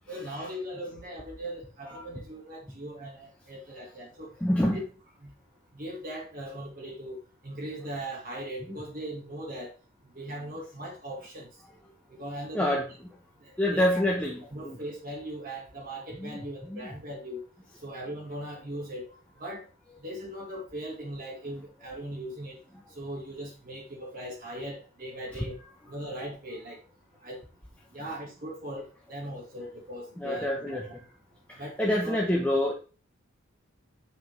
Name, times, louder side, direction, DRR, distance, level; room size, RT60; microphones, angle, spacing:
voice 1, 0.1-4.3 4.7-4.8 5.2-5.3 5.7-9.7 10.1-11.5 12.1-12.8 13.4-14.0 14.4-17.4 17.8-19.1 19.4-19.7 20.0-22.6 22.9-25.6 25.9-26.8 27.2-27.4 27.9-30.8 31.6-32.2, right 1 dB, 40° right, -2 dB, 1.7 m, -39 dB
voice 2, 4.4-4.8 12.5-12.9 13.6-14.8 16.2-16.3 16.7-16.9 30.2-30.9 31.8-32.7, left 1 dB, 5° left, -2 dB, 0.8 m, -26 dB
7.3 x 5.6 x 3.1 m, 0.35 s
head